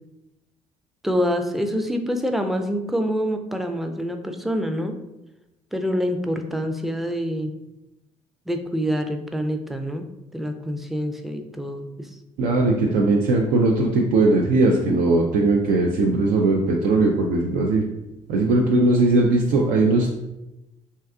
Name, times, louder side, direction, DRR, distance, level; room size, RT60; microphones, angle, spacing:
voice 1, 1.0-4.9 5.7-7.5 8.5-10.1 10.3-12.1, equal, ahead, 5 dB, 0.4 m, -26 dB
voice 2, 12.4-17.8 18.3-20.1, right 2 dB, 65° right, 0 dB, 0.4 m, -19 dB
2.7 x 2.3 x 3.4 m, 0.95 s
hypercardioid pair, 55°, 16 cm